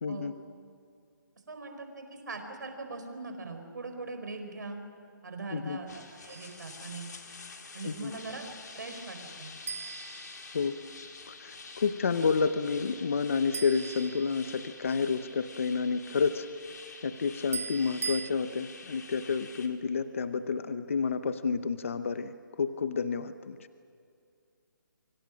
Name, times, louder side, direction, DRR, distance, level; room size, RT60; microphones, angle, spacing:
voice 1, 0.0-0.4 5.5-5.8 7.8-8.1 10.5-10.8 11.3-16.5 17.0-23.6, left 5 dB, 40° left, 11 dB, 0.8 m, -30 dB
voice 2, 1.5-4.8 5.2-5.9 6.2-7.1 7.7-8.5 8.7-9.5, right 3 dB, 60° right, 5 dB, 5.0 m, -41 dB
sound 1, 5.9-19.7, left 4 dB, 55° left, 3.3 m, -48 dB
sound 2, 6.3-6.7 9.7-11.0 13.5-14.8 17.5-18.3, right 5 dB, 45° right, 0.6 m, -39 dB
29.5 x 25.5 x 6.3 m, 2.4 s
hypercardioid pair, 175°, 11 cm